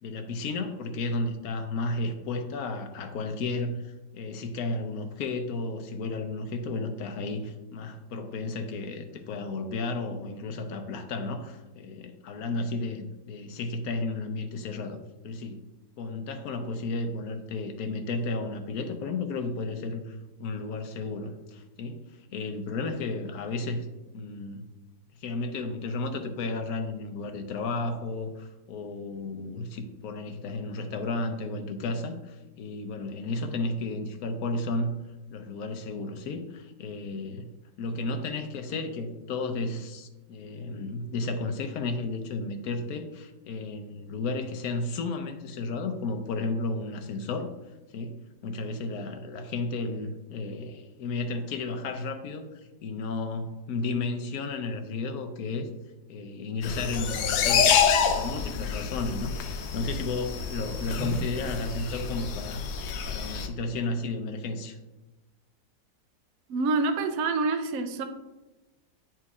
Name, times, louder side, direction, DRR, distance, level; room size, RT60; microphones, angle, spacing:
voice 1, 0.0-15.0 15.2-15.6 16.0-23.9 24.1-24.6 25.2-35.0 35.3-37.5 37.8-47.5 47.9-52.5 52.8-55.7 56.1-57.8 58.1-62.6 63.0-64.8, left 3 dB, 65° left, 6 dB, 1.0 m, -33 dB
sound 1, 56.6-63.5, left 7 dB, 90° left, 1.3 m, -27 dB
voice 2, 66.5-68.0, right 3 dB, 65° right, 6 dB, 0.9 m, -26 dB
9.7 x 4.5 x 2.4 m, 1.1 s
omnidirectional pair, 1.9 m